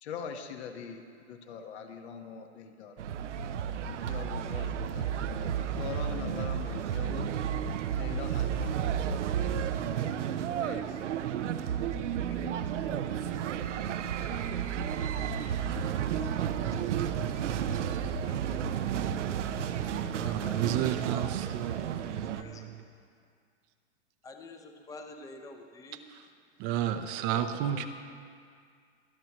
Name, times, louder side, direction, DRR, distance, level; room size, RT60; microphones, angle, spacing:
voice 1, 0.0-2.9 3.8-7.3 7.9-9.5 10.6-10.8, left 7 dB, 65° left, 5 dB, 1.4 m, -43 dB
sound 1, 3.0-22.4, right 8 dB, 85° right, 0.8 m, -32 dB
voice 2, 13.1-13.6 15.0-19.3 20.0-21.3 21.8-22.7 24.2-26.1 27.7-27.9, left 2 dB, 10° left, 4 dB, 0.7 m, -50 dB
voice 3, 19.7-22.7 26.6-27.9, right 10 dB, 40° right, 8 dB, 0.7 m, -33 dB
24.5 x 9.5 x 3.0 m, 2.2 s
hypercardioid pair, 130°, 35 cm